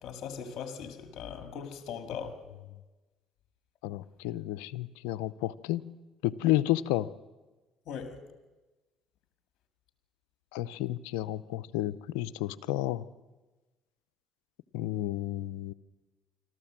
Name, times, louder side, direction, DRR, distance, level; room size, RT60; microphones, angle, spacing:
voice 1, 0.0-2.4 7.9-8.2, left 7 dB, 60° left, 2.1 m, -39 dB
voice 2, 3.8-5.8 6.2-7.1 10.5-13.0 14.7-15.7, left 15 dB, 85° left, 0.6 m, -31 dB
26.0 x 13.5 x 7.4 m
supercardioid pair, 75°, 0 cm